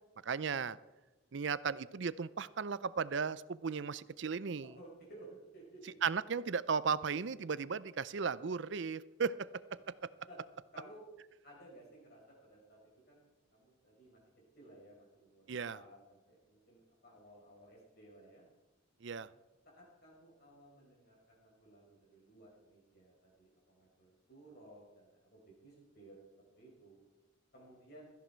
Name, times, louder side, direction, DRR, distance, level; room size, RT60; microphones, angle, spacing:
voice 1, 0.2-0.8 1.3-4.7 6.0-9.5 15.5-15.8 19.0-19.3, right 5 dB, 60° right, 18 dB, 0.5 m, -36 dB
voice 2, 4.6-6.0 10.3-10.4 10.7-11.1 11.4-12.8 13.1-13.2 13.5-14.2 14.5-18.4 19.2-19.3 19.7-26.2 26.6-27.0 27.5-28.0, right 1 dB, 50° left, -3 dB, 4.9 m, -57 dB
16.5 x 14.0 x 4.5 m, 1.1 s
head